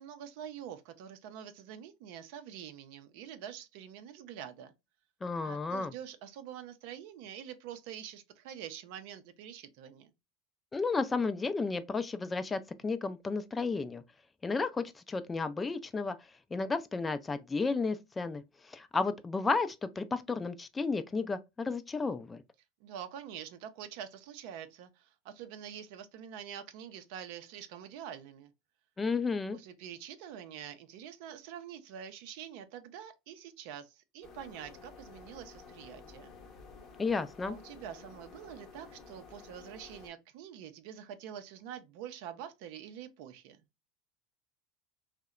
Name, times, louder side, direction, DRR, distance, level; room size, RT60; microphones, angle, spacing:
voice 1, 0.0-4.7 5.4-10.1 22.8-28.5 29.5-36.3 37.4-43.6, right 9 dB, 65° right, 0.4 m, -46 dB
voice 2, 5.2-5.9 10.7-14.0 14.4-16.2 16.5-22.4 29.0-29.6 37.0-37.6, left 4 dB, 20° left, 0.3 m, -33 dB
sound 1, 34.2-40.1, left 5 dB, 45° left, 0.8 m, -52 dB
2.7 x 2.0 x 2.3 m
hypercardioid pair, 90°, 0 cm